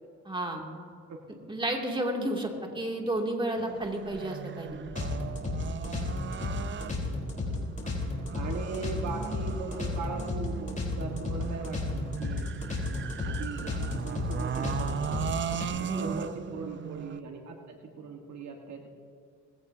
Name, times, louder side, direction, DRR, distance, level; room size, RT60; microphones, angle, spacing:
voice 1, 0.3-0.6 1.5-2.5 2.7-4.8 15.9-16.1, right 1 dB, 15° right, 0 dB, 2.7 m, -31 dB
sound 1, 3.6-17.2, right 8 dB, 40° right, 0.6 m, -38 dB
sound 2, 4.9-15.6, left 3 dB, 25° left, 4.0 m, -33 dB
voice 2, 6.7-7.7 8.0-12.5 12.9-15.4 15.8-18.9, right 4 dB, 65° right, 2 dB, 1.6 m, -40 dB
20.5 x 16.0 x 2.8 m, 2.4 s
cardioid pair, 90°, 30 cm